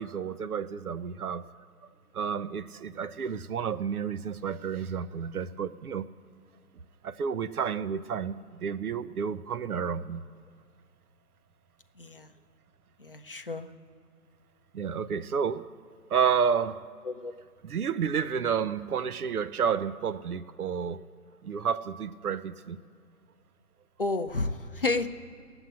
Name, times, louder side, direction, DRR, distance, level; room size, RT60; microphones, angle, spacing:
voice 1, 0.0-1.5 2.1-6.1 7.0-10.2 14.7-15.7 16.1-16.8 17.6-21.0 21.4-22.8, right 7 dB, 65° right, 0.7 m, -30 dB
voice 2, 12.0-12.3 13.0-13.7 17.0-17.3 24.0-25.1, left 3 dB, 35° left, 0.6 m, -31 dB
18.5 x 8.0 x 9.9 m
figure-of-eight pair, 160°, 47 cm